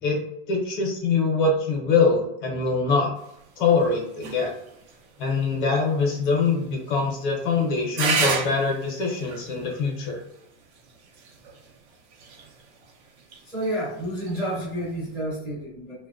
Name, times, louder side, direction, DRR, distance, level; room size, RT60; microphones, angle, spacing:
voice 1, 0.5-3.1 3.6-4.5 5.2-10.2, left 4 dB, 45° left, -1 dB, 0.8 m, -23 dB
sound 1, 3.2-15.2, right 4 dB, 70° right, 0.7 m, -35 dB
voice 2, 13.4-16.1, right 1 dB, ahead, -11 dB, 0.7 m, -30 dB
2.7 x 2.2 x 2.5 m, 0.81 s
supercardioid pair, 170°, 34 cm